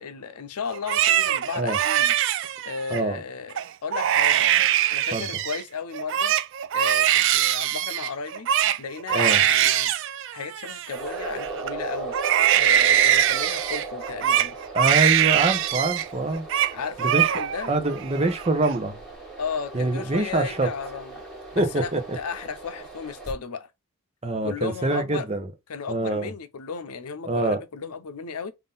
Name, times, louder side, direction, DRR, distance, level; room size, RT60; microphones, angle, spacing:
voice 1, 0.0-2.1 2.6-4.5 4.9-6.3 6.7-8.5 8.8-9.9 10.3-12.2 12.6-14.6 16.7-17.7 19.4-21.2 21.5-23.7 24.4-25.3 25.7-28.5, left 5 dB, 90° left, 0.6 m, -34 dB
Crying sobbing, 0.7-3.0 3.5-3.7 3.9-5.6 5.9-11.7 12.1-16.1 16.3-16.7 17.0-17.7 18.1-18.7, right 11 dB, 55° right, 0.3 m, -22 dB
voice 2, 2.9-3.2 5.1-5.3 9.1-9.4 14.7-16.4 17.0-17.3 17.7-19.0 19.7-20.7 21.6-22.2 24.2-25.5 25.9-26.3 27.3-27.6, right 2 dB, 30° right, 0.7 m, -25 dB
sound 1, 10.9-23.3, right 3 dB, ahead, 1.6 m, -37 dB
3.7 x 2.6 x 3.8 m
head